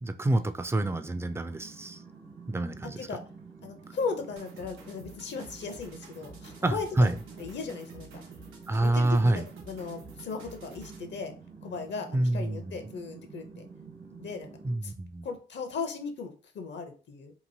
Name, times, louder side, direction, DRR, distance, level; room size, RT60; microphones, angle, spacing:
voice 1, 0.0-2.0 2.5-3.0 6.6-7.1 8.7-9.5 12.1-12.8 14.6-15.3, right 1 dB, 10° right, 10 dB, 0.3 m, -27 dB
sound 1, 0.7-14.8, right 5 dB, 65° right, 1.1 m, -48 dB
voice 2, 3.6-6.9 7.4-8.2 8.8-11.3 11.6-13.7 14.2-14.5 14.8-14.9 15.2-17.3, left 5 dB, 60° left, 6 dB, 0.6 m, -37 dB
sound 2, 4.4-11.1, right 3 dB, 85° right, 0.7 m, -51 dB
2.9 x 2.6 x 2.7 m, 0.38 s
cardioid pair, 60°, 20 cm